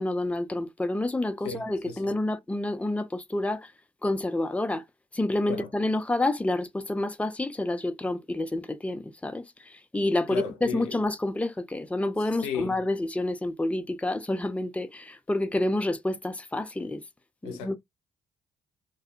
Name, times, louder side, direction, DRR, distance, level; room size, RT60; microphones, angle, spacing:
voice 1, 0.0-3.6 4.0-4.8 5.1-9.4 9.9-17.0 17.4-17.8, left 2 dB, 5° left, 0.5 m, -28 dB
voice 2, 1.4-2.1 5.5-5.7 10.3-11.0 12.2-12.8 17.4-17.8, left 6 dB, 75° left, 0.6 m, -35 dB
2.3 x 2.1 x 2.8 m
hypercardioid pair, 40°, 21 cm